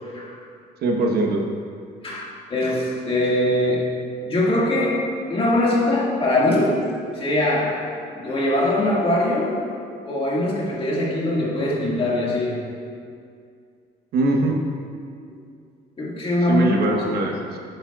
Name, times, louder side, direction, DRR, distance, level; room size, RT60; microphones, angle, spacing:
voice 1, 0.1-0.4 2.0-7.8 8.2-9.7 10.1-12.6 16.0-16.7 17.0-17.3, left 1 dB, 35° left, -4 dB, 1.8 m, -22 dB
voice 2, 0.8-1.4 14.1-14.6 16.5-17.6, right 2 dB, 65° right, 1 dB, 1.0 m, -21 dB
11.0 x 7.8 x 2.3 m, 2.3 s
cardioid pair, 110°, 17 cm